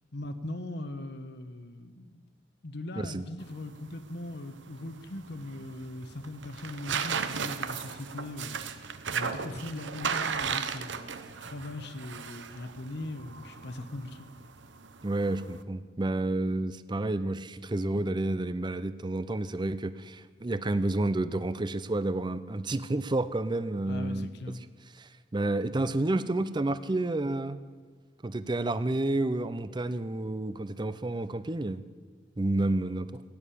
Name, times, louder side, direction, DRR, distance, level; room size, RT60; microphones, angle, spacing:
voice 1, 0.1-2.2 2.6-14.3 23.9-24.6 32.6-32.7, left 1 dB, 60° left, 9 dB, 1.0 m, -40 dB
voice 2, 3.0-3.3 15.0-24.6 24.9-27.6 28.2-31.8 32.4-33.1, right 2 dB, 25° right, 14 dB, 0.5 m, -30 dB
sound 1, 3.4-15.6, right 6 dB, 70° right, 0.8 m, -36 dB
16.0 x 9.5 x 8.5 m, 1.5 s
head